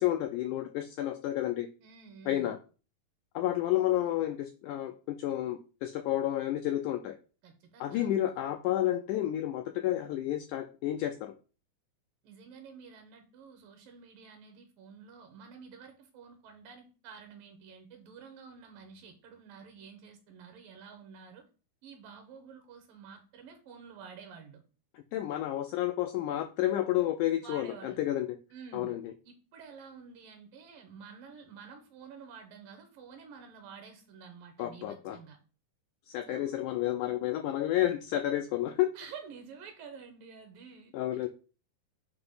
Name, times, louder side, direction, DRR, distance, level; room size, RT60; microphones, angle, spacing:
voice 1, 0.0-1.7 2.3-2.6 3.4-7.2 7.8-11.3 24.9-28.3 28.7-29.1 34.6-35.2 36.1-38.9 40.9-41.3, left 13 dB, 90° left, 6 dB, 1.8 m, -31 dB
voice 2, 1.8-2.5 7.4-8.1 12.2-21.4 21.8-24.6 27.4-28.0 28.5-28.9 29.2-35.4 36.3-36.6 38.9-40.9, right 6 dB, 75° right, 6 dB, 2.6 m, -50 dB
7.9 x 2.9 x 5.5 m, 0.35 s
omnidirectional pair, 4.2 m